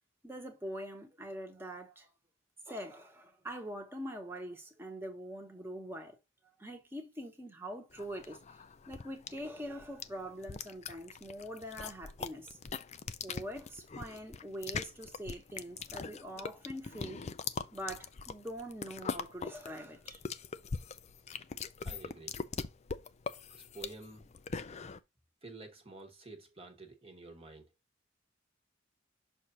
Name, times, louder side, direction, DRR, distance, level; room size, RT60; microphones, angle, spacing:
voice 1, 0.2-2.1 2.7-6.2 6.6-8.4 8.9-12.6 13.2-17.2 17.7-20.2, equal, 10° right, 1.3 m, -43 dB
sound 1, 8.0-25.0, left 5 dB, 35° left, 0.4 m, -41 dB
voice 2, 21.8-22.4 23.5-24.3 25.4-27.7, right 2 dB, 30° right, 1.2 m, -50 dB
6.5 x 2.6 x 5.6 m
head